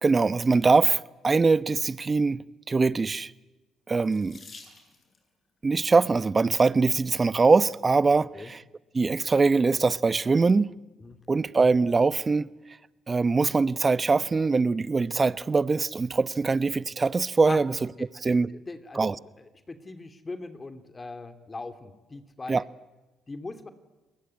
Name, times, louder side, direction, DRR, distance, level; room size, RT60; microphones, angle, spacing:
voice 1, 0.0-3.3 3.9-4.4 5.6-8.6 8.9-10.7 11.3-12.5 13.1-17.8 18.2-18.5 18.9-19.2 22.5-22.6, right 4 dB, 35° right, 0.9 m, -23 dB
Water tap faucet / Sink (filling or washing), 4.0-5.3 6.3-6.7 7.4-7.5 7.8-7.9, left 4 dB, 45° left, 7.7 m, -50 dB
voice 2, 18.5-22.6 23.3-23.7, left 3 dB, 30° left, 2.7 m, -40 dB
29.5 x 20.5 x 9.7 m
hypercardioid pair, 55°, 0 cm